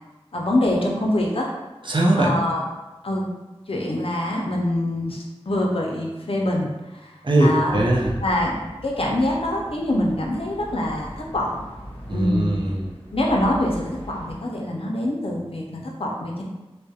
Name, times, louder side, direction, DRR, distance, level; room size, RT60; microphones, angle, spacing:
voice 1, 0.3-1.5 2.2-2.6 3.0-3.3 3.7-7.1 7.4-7.8 8.2-11.6 12.1-12.5 13.1-16.4, left 1 dB, 65° left, -1 dB, 0.4 m, -24 dB
voice 2, 1.8-2.4 7.2-8.2 12.1-13.0, right 1 dB, 50° right, -3 dB, 0.5 m, -20 dB
sound 1, 7.6-14.4, equal, 20° left, 0.7 m, -39 dB
2.3 x 2.0 x 2.6 m, 1.1 s
wide cardioid pair, 45°, 11 cm